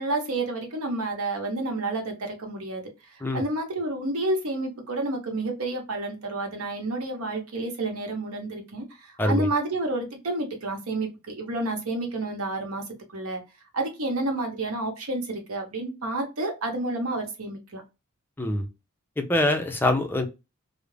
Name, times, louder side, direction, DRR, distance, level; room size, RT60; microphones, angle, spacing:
voice 1, 0.0-2.8 3.1-12.8 13.1-13.4 13.7-17.8, right 2 dB, 70° right, 0.9 m, -30 dB
voice 2, 9.2-9.5 18.4-18.7 19.2-20.3, left 1 dB, 10° left, 0.4 m, -24 dB
2.4 x 2.0 x 3.1 m
head